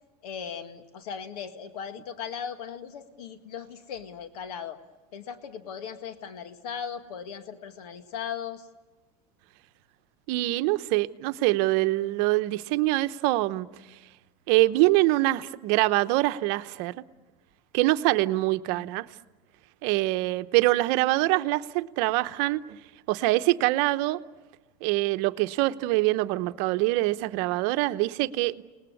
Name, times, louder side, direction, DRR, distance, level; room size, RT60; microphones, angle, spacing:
voice 1, 0.2-4.8 5.1-8.7, left 7 dB, 80° left, 1.9 m, -38 dB
voice 2, 10.3-13.7 14.5-17.0 17.7-19.1 19.8-22.8 23.1-24.2 24.8-28.6, right 19 dB, 60° right, 0.9 m, -24 dB
30.0 x 19.5 x 9.8 m
supercardioid pair, 130°, 19 cm